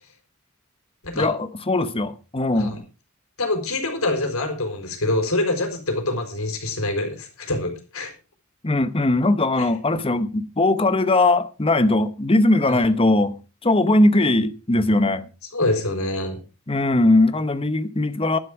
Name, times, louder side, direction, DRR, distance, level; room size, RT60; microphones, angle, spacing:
voice 1, 1.1-2.8 8.6-15.3 16.7-18.4, left 2 dB, 25° left, 1.0 m, -20 dB
voice 2, 3.4-8.1 9.6-9.7 12.7-12.8 15.5-16.4, left 2 dB, 90° left, 4.3 m, -25 dB
11.5 x 10.5 x 4.9 m
head